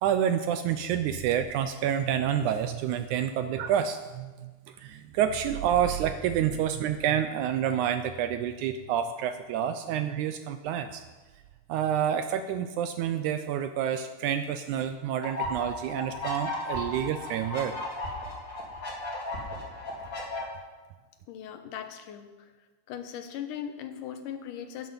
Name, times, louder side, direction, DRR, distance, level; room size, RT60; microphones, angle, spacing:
voice 1, 0.0-11.0 11.7-17.7, right 9 dB, 80° right, 9 dB, 1.8 m, -28 dB
sound 1, 15.2-20.4, left 1 dB, 35° left, 3.0 m, -35 dB
voice 2, 21.3-22.5 22.9-24.9, left 9 dB, 80° left, 7 dB, 2.5 m, -39 dB
13.5 x 9.9 x 5.5 m, 1.3 s
omnidirectional pair, 3.9 m